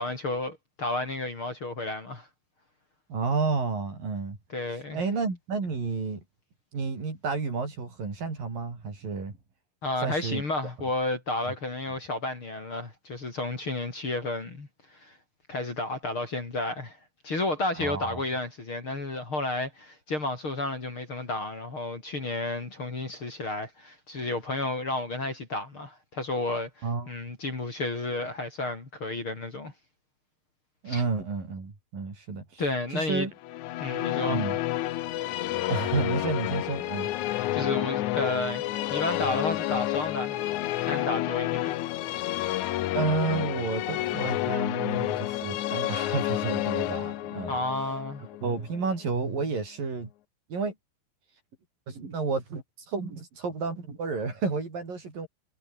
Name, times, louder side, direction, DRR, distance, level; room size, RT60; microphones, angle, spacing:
voice 1, 0.0-2.3 4.5-5.0 9.8-15.2 15.5-17.0 17.2-29.7 30.9-31.0 32.6-33.3 33.8-34.4 37.5-38.6 38.9-40.5 40.9-41.8 47.5-48.2, left 2 dB, 30° left, 4.5 m, -32 dB
voice 2, 3.1-4.4 4.9-6.2 6.7-9.4 10.0-10.4 17.8-18.2 26.8-27.1 30.8-32.6 32.9-33.3 34.3-34.6 35.7-37.1 42.9-47.6 48.4-50.1 50.5-50.7 51.9-55.3, right 4 dB, 55° right, 7.7 m, -31 dB
Musical instrument, 33.4-48.9, left 15 dB, 85° left, 1.7 m, -30 dB
omnidirectional pair, 4.7 m